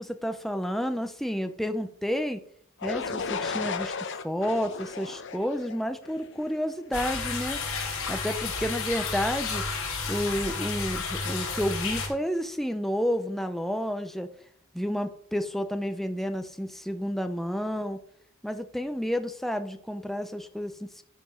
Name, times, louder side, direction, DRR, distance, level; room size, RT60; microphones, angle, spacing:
voice 1, 0.0-2.4 2.8-7.6 8.1-9.6 10.1-14.3 14.7-18.0 18.4-21.0, equal, ahead, 8 dB, 0.7 m, -30 dB
sound 1, 2.8-6.7, left 5 dB, 55° left, 0.9 m, -35 dB
sound 2, 6.9-12.1, left 4 dB, 75° left, 3.9 m, -31 dB
12.0 x 5.2 x 6.2 m, 0.62 s
head